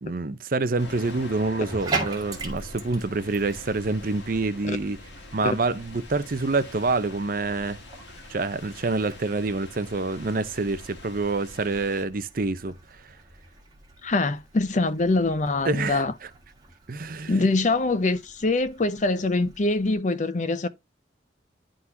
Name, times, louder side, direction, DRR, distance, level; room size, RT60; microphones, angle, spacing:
voice 1, 0.0-5.0 5.3-7.8 8.3-12.8 15.6-16.0 16.9-17.4, right 3 dB, 50° right, 0.6 m, -27 dB
sound 1, 0.8-12.1, left 2 dB, 75° left, 1.8 m, -45 dB
Bathtub (filling or washing), 1.6-19.9, right 3 dB, 20° right, 1.7 m, -41 dB
voice 2, 14.0-16.1 17.3-20.7, left 2 dB, 45° left, 0.6 m, -24 dB
11.0 x 3.9 x 2.7 m
head